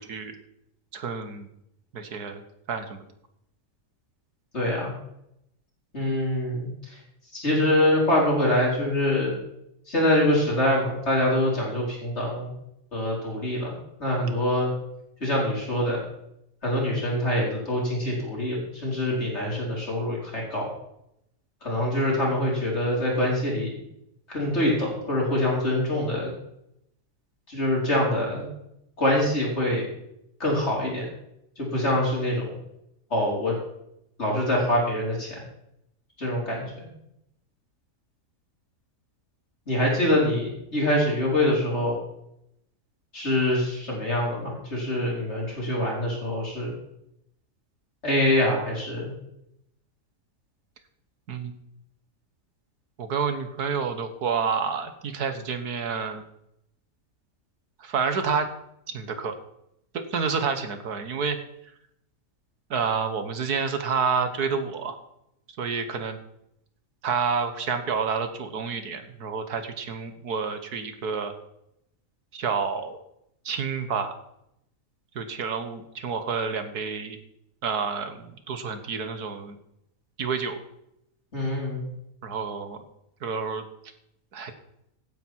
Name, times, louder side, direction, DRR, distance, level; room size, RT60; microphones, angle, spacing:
voice 1, 0.9-1.5 1.9-2.4 2.7-3.1 51.3-51.5 53.0-56.2 57.8-58.5 58.9-59.3 59.9-61.4 62.7-65.0 65.6-66.2 67.0-71.3 72.3-73.0 73.5-74.1 75.2-77.2 77.6-79.6 80.2-80.6 82.2-82.9 83.2-83.6 84.3-84.5, right 5 dB, 75° right, 8 dB, 1.9 m, -29 dB
voice 2, 4.5-4.9 5.9-6.9 7.3-9.3 9.9-12.5 12.9-14.7 15.2-16.0 16.6-20.7 21.6-23.7 24.3-26.3 27.5-28.5 29.0-29.8 30.4-31.1 31.6-32.4 33.1-33.6 34.2-35.4 36.2-36.9 39.7-41.9 43.1-46.7 48.0-49.1 81.3-81.8, left 1 dB, 45° left, -4 dB, 5.2 m, -25 dB
16.0 x 9.8 x 4.6 m, 0.80 s
omnidirectional pair, 1.7 m